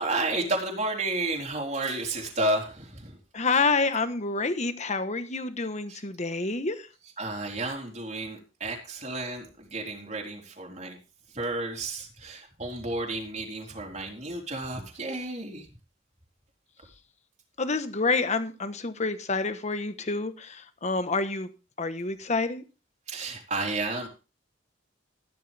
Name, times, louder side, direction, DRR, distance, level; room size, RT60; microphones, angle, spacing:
voice 1, 0.0-3.2 5.9-6.0 7.2-11.0 11.3-15.7 23.1-24.1, right 2 dB, 40° right, 3.9 m, -32 dB
voice 2, 3.3-6.9 17.6-21.5 21.8-22.6, left 3 dB, 40° left, 1.3 m, -28 dB
14.0 x 12.0 x 3.5 m
head